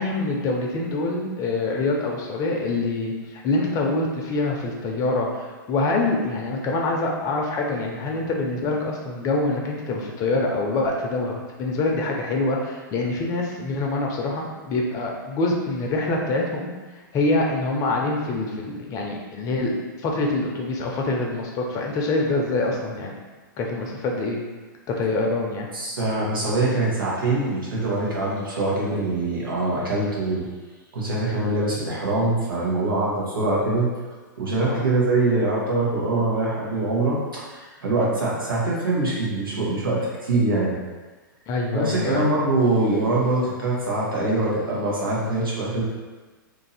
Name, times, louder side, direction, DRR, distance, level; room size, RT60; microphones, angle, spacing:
voice 1, 0.0-16.7 17.1-19.7 20.0-23.1 23.6-24.4 25.0-25.7 34.6-34.8 38.0-38.1 41.5-42.2, left 2 dB, 30° left, 0 dB, 0.6 m, -25 dB
voice 2, 25.7-30.5 30.9-33.9 34.4-40.8 41.7-45.8, right 2 dB, 85° right, -5 dB, 1.3 m, -23 dB
2.8 x 2.7 x 4.0 m, 1.3 s
hypercardioid pair, 130°, 11 cm